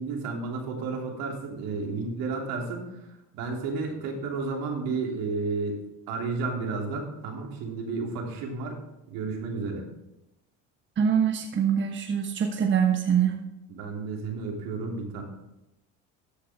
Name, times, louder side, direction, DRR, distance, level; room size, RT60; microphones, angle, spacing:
voice 1, 0.0-5.8 6.1-8.8 9.1-9.8 13.7-15.2, right 4 dB, 75° right, 0 dB, 3.0 m, -32 dB
voice 2, 11.0-13.4, right 8 dB, 35° right, 3 dB, 1.3 m, -24 dB
13.5 x 8.2 x 3.6 m, 0.90 s
supercardioid pair, 110°, 35 cm